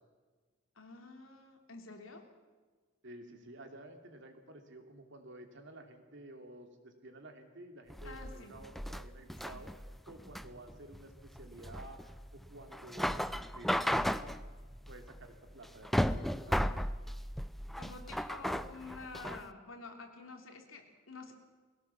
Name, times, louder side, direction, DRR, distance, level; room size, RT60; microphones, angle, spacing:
voice 1, 0.8-2.3 8.0-8.6 9.4-9.6 17.8-21.3, left 3 dB, 90° left, 3 dB, 3.1 m, -49 dB
voice 2, 3.0-9.7 10.1-14.4 14.9-16.6, right 1 dB, 65° right, 4 dB, 2.7 m, -52 dB
sound 1, 7.9-19.5, equal, ahead, 0.5 m, -35 dB
21.5 x 17.0 x 7.2 m, 1.4 s
head